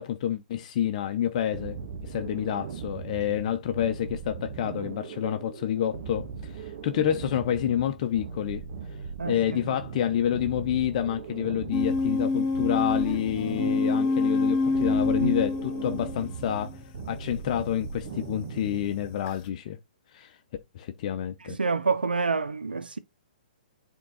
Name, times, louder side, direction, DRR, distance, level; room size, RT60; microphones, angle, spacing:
voice 1, 0.0-1.8 2.0-8.6 9.2-19.8 20.1-20.4 20.7-21.6, left 10 dB, 45° left, 0.8 m, -28 dB
sound 1, 1.5-19.1, right 6 dB, 50° right, 1.4 m, -39 dB
sound 2, 11.7-17.1 17.8-18.0 19.3-19.4, left 3 dB, 30° left, 1.6 m, -26 dB
voice 2, 21.4-23.0, right 4 dB, 85° right, 0.7 m, -27 dB
8.5 x 3.7 x 4.1 m
figure-of-eight pair, 130°, 5 cm